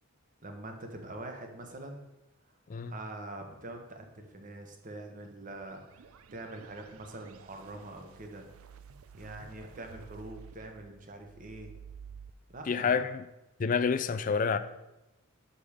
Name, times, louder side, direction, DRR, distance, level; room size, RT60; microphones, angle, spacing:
voice 1, 0.4-2.1 2.8-8.5 9.1-11.7 12.5-13.1, right 2 dB, 40° right, 1.0 m, -44 dB
sound 1, 5.4-12.3, right 7 dB, 80° right, 0.4 m, -52 dB
voice 2, 12.7-13.2 13.6-14.6, left 6 dB, 40° left, 0.4 m, -28 dB
6.8 x 5.3 x 4.9 m
head